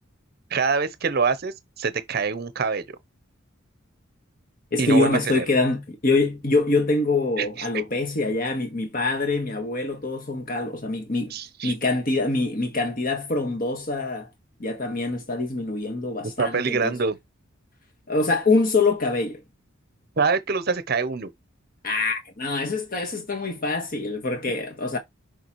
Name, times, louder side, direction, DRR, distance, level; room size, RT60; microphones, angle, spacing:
voice 1, 0.5-2.8 4.8-5.1 5.4-5.5 7.4-7.5 11.3-11.7 16.2-17.2 20.2-21.3, right 4 dB, 50° right, 0.7 m, -25 dB
voice 2, 4.7-11.3 11.6-14.3 14.6-17.0 18.1-19.4 21.8-25.0, left 3 dB, 45° left, 1.5 m, -24 dB
6.6 x 5.0 x 3.1 m
head